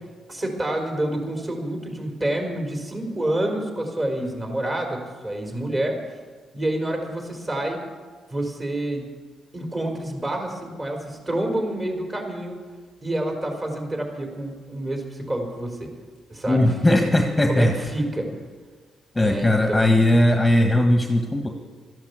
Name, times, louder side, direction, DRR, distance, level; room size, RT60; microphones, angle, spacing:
voice 1, 0.3-6.0 6.5-7.8 8.3-9.1 9.5-12.6 13.0-15.9 16.3-17.0 17.5-18.3 19.2-20.0, right 1 dB, 25° right, 2 dB, 4.1 m, -28 dB
voice 2, 16.5-17.7 19.1-21.5, left 1 dB, 10° left, 3 dB, 1.5 m, -18 dB
13.0 x 12.0 x 8.2 m, 1.5 s
cardioid pair, 90°, 0 cm